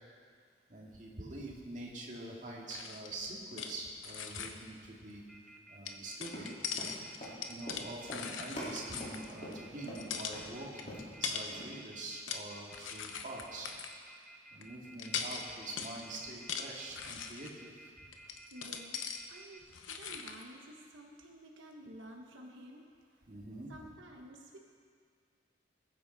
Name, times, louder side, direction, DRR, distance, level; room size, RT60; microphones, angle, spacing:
voice 1, 0.7-5.2 5.7-6.5 7.5-13.7 14.5-17.7 18.0-18.1 23.3-23.7, right 2 dB, 40° right, -3 dB, 2.1 m, -45 dB
sound 1, 2.7-3.8 4.0-4.5 5.9-9.5 9.8-10.4 10.8-11.5 12.0-12.5 12.7-14.0 14.6-14.7 15.0-17.6 18.1-19.2 19.6-20.4, left 7 dB, 90° left, 0.9 m, -41 dB
Telephone, 5.3-19.6, right 1 dB, ahead, 0.9 m, -55 dB
Run, 6.2-10.0 10.3-10.5 10.8-11.2 11.5-11.6, equal, 40° left, 3.7 m, -44 dB
voice 2, 18.5-23.0 23.7-24.6, right 1 dB, 85° right, 1 dB, 1.1 m, -52 dB
20.5 x 9.6 x 4.0 m, 2.1 s
head